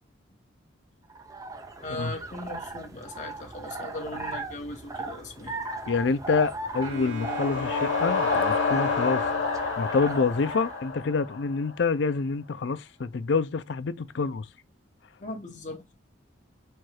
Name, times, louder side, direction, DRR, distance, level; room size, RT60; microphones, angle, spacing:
sound 1, 1.1-10.8, right 2 dB, 20° right, 0.5 m, -38 dB
voice 1, 1.8-5.6 15.2-15.9, left 2 dB, 40° left, 1.3 m, -38 dB
voice 2, 5.9-9.3 9.8-14.5, left 4 dB, 70° left, 0.4 m, -27 dB
sound 2, 6.8-11.7, left 4 dB, 85° left, 0.9 m, -29 dB
Bowed string instrument, 6.8-10.9, left 4 dB, 85° right, 2.0 m, -38 dB
4.5 x 2.4 x 4.6 m
head